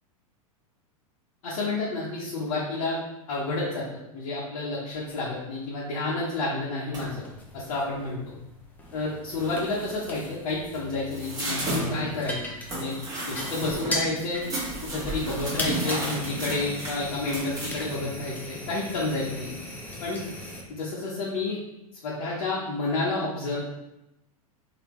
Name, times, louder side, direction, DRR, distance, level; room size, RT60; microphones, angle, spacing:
voice 1, 1.4-3.0 3.3-7.2 7.5-8.3 8.9-12.4 12.7-12.9 13.3-14.4 14.9-19.5 20.0-20.2 20.7-21.6 22.0-23.6, left 2 dB, 60° left, -6 dB, 0.9 m, -30 dB
sound 1, 6.9-7.3 8.9-9.0 9.3-9.8 10.5-18.0, right 1 dB, 20° right, 1.3 m, -33 dB
sound 2, 7.0-20.6, left 1 dB, 10° left, 0.7 m, -38 dB
3.3 x 2.8 x 3.1 m, 0.92 s
hypercardioid pair, 95°, 19 cm